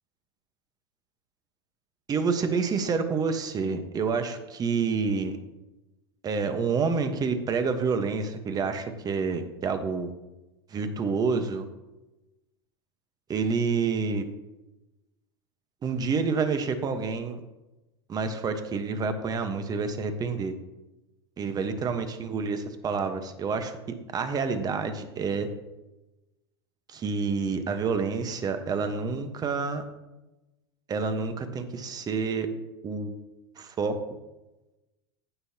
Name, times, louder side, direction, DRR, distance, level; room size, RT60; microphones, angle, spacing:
voice 1, 2.1-5.4 6.2-10.1 10.7-11.7 13.3-14.2 15.8-17.4 18.1-20.5 21.4-22.6 22.8-23.8 24.1-25.5 26.9-29.8 30.9-32.5 32.8-33.1 33.6-33.9, right 5 dB, 30° right, 8 dB, 1.2 m, -28 dB
15.5 x 6.4 x 2.9 m, 1.0 s
hypercardioid pair, 100°, 14 cm